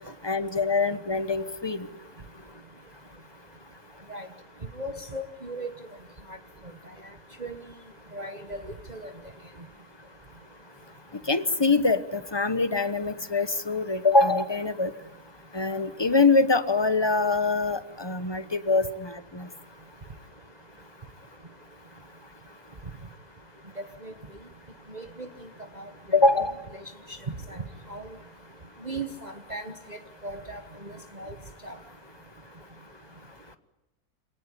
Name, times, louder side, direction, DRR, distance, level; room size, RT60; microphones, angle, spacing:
voice 1, 0.2-1.9 11.3-14.9 15.5-19.5 26.1-26.5, left 3 dB, 20° left, 11 dB, 0.9 m, -24 dB
voice 2, 4.8-5.7 7.4-7.6 8.1-8.6 8.9-9.1 24.0-24.1 24.9-25.3 27.5-27.6 27.9-28.1 28.8-29.7 30.2-30.6 31.2-31.3 31.6-31.7, right 2 dB, 30° right, 5 dB, 1.3 m, -36 dB
26.5 x 18.5 x 9.8 m, 0.98 s
omnidirectional pair, 1.7 m